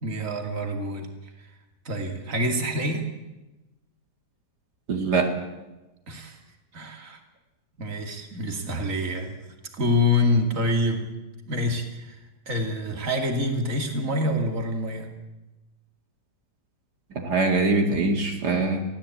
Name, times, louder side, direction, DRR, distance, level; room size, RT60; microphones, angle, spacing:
voice 1, 0.0-1.1 1.8-3.0 6.1-6.4 6.7-7.2 7.8-9.3 9.7-11.0 11.5-12.2 12.5-15.1, left 1 dB, 50° right, 4 dB, 2.9 m, -26 dB
voice 2, 4.9-5.3 17.1-18.8, right 3 dB, 75° right, 3 dB, 2.9 m, -23 dB
22.5 x 16.5 x 8.7 m, 1.0 s
omnidirectional pair, 1.8 m